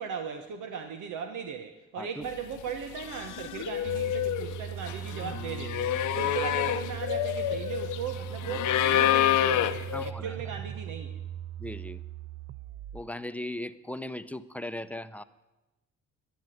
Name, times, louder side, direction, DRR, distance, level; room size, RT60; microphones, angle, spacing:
voice 1, 0.0-11.2, right 7 dB, 80° right, 6 dB, 1.2 m, -38 dB
voice 2, 2.0-2.3 9.9-10.4 11.6-12.0 12.9-15.2, left 1 dB, 5° left, 12 dB, 0.7 m, -38 dB
sound 1, 2.5-2.7 3.0-10.1, left 12 dB, 80° left, 0.8 m, -28 dB
sound 2, 3.8-13.1, right 10 dB, 40° right, 0.4 m, -39 dB
12.0 x 11.0 x 9.2 m, 1.0 s
cardioid pair, 90°, 30 cm